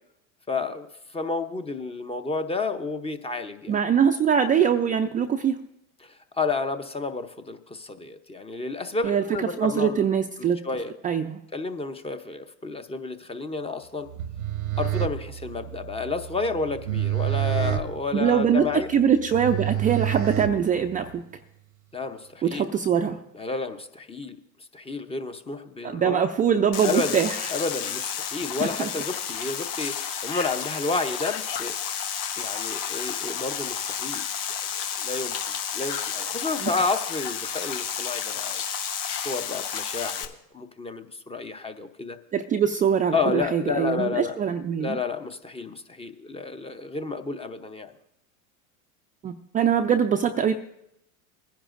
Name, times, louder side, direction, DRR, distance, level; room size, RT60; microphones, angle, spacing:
voice 1, 0.5-0.9 1.1-3.7 6.0-10.0 10.4-10.9 11.5-14.1 14.8-18.9 21.9-22.7 23.3-24.4 24.7-26.2 26.8-27.2 27.5-31.8 32.4-34.2 35.0-38.6 39.1-42.2 43.1-44.4 44.8-47.9, left 4 dB, 15° left, 8 dB, 0.7 m, -31 dB
voice 2, 3.7-5.6 9.0-9.2 9.6-10.6 11.0-11.4 18.1-18.6 18.9-21.2 22.4-23.2 25.8-27.5 28.6-28.9 36.6-36.7 42.3-45.0 49.2-50.6, right 8 dB, 20° right, 4 dB, 0.4 m, -23 dB
sound 1, 14.1-21.1, right 12 dB, 90° right, 1.0 m, -29 dB
sound 2, 26.7-40.2, left 8 dB, 55° left, 1.1 m, -31 dB
20.5 x 10.0 x 2.5 m, 0.80 s
hypercardioid pair, 100°, 41 cm